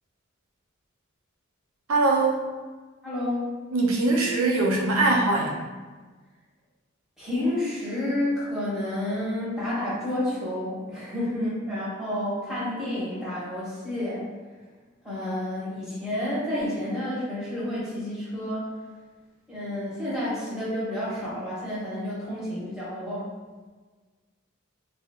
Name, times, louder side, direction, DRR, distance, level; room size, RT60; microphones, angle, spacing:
voice 1, 1.9-2.4 3.7-5.6, right 2 dB, 85° right, -2 dB, 0.7 m, -22 dB
voice 2, 3.0-3.5 7.2-14.2 15.0-18.7 19.5-23.3, left 1 dB, 5° right, -11 dB, 1.3 m, -30 dB
3.3 x 2.6 x 3.6 m, 1.4 s
head